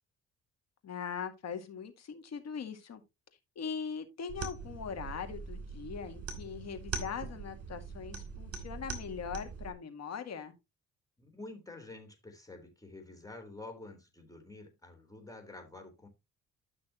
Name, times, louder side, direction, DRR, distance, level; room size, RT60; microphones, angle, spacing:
voice 1, 0.8-3.0 3.6-10.5, left 6 dB, 60° left, 2.1 m, -41 dB
sound 1, 4.3-9.7, right 5 dB, 50° right, 2.8 m, -42 dB
voice 2, 11.2-16.1, left 2 dB, 10° left, 3.4 m, -49 dB
12.5 x 6.1 x 2.9 m
cardioid pair, 90°, 30 cm